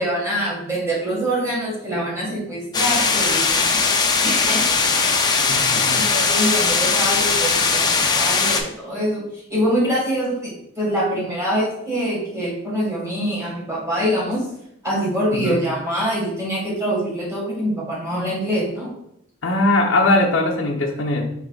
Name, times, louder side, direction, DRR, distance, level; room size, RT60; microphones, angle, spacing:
voice 1, 0.0-3.8 4.2-4.6 5.9-14.5 14.8-18.9, equal, 15° right, -4 dB, 1.7 m, -24 dB
sound 1, 2.7-8.6, left 4 dB, 20° left, 0.4 m, -19 dB
voice 2, 5.5-6.0 15.3-15.6 19.4-21.3, left 2 dB, 70° left, -1 dB, 0.8 m, -20 dB
4.8 x 4.5 x 2.4 m, 0.76 s
head